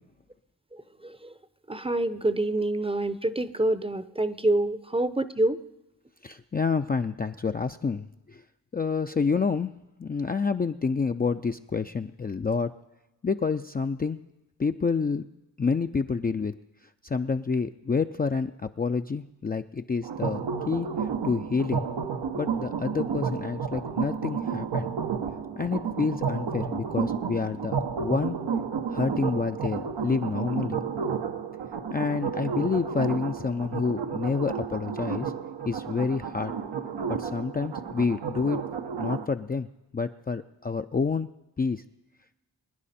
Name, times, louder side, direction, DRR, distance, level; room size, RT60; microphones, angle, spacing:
voice 1, 0.7-1.4 1.7-5.6, right 1 dB, 15° right, 13 dB, 0.7 m, -27 dB
voice 2, 6.2-8.4 8.7-9.7 10.0-12.7 13.2-14.3 14.6-15.2 15.6-16.5 17.0-20.9 21.2-21.8 22.3-24.9 25.6-28.4 28.9-30.8 31.9-35.3 35.7-36.5 37.1-38.6 39.0-39.7 39.9-41.3 41.6-41.8, left 5 dB, 25° left, 7 dB, 0.4 m, -28 dB
sound 1, 20.0-39.2, right 6 dB, 85° right, 1.0 m, -31 dB
23.0 x 10.0 x 4.3 m, 1.0 s
cardioid pair, 60°, 40 cm